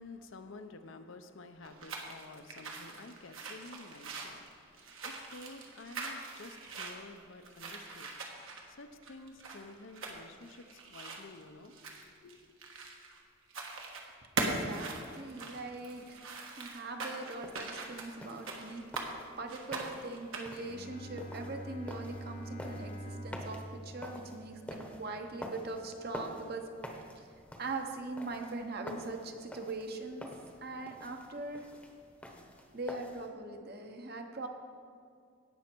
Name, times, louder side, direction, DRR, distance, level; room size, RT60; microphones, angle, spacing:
voice 1, 0.0-12.5, left 2 dB, 65° left, 8 dB, 0.7 m, -51 dB
sound 1, 1.6-13.2 13.5-14.0 14.4-19.1 19.5-20.7, right 3 dB, 70° right, 1.4 m, -41 dB
voice 2, 14.4-16.2 16.6-26.6 27.2-27.3 27.6-30.3 30.6-31.7 32.7-34.5, right 2 dB, 45° right, 5 dB, 0.9 m, -41 dB
sound 2, 17.3-33.3, equal, 5° left, 0.9 m, -48 dB
Bowed string instrument, 20.5-25.8, right 1 dB, 35° left, 0.9 m, -46 dB
17.5 x 6.4 x 4.5 m, 2.3 s
head